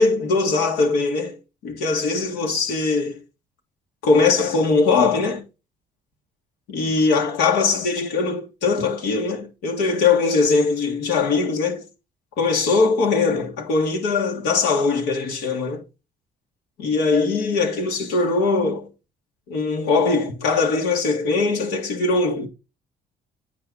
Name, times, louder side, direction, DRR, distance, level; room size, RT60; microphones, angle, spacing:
voice 1, 0.0-1.4 1.6-3.2 4.0-5.4 6.7-11.9 12.4-15.8 16.8-18.9 19.5-22.5, left 4 dB, 90° left, 1.9 m, -21 dB
9.0 x 4.6 x 3.8 m
cardioid pair, 110°, 17 cm